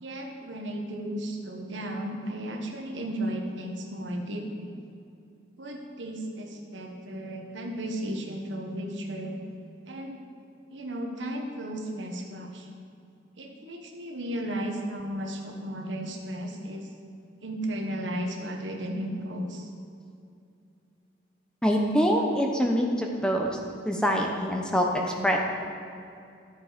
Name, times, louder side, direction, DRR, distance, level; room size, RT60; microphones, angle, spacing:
voice 1, 0.0-4.8 5.6-9.3 9.9-10.2 10.7-12.7 13.4-16.9 17.4-19.7, right 1 dB, 85° right, 2 dB, 1.4 m, -34 dB
voice 2, 21.6-23.6 23.8-25.5, equal, 5° left, 0 dB, 0.9 m, -25 dB
12.5 x 7.2 x 5.1 m, 2.5 s
head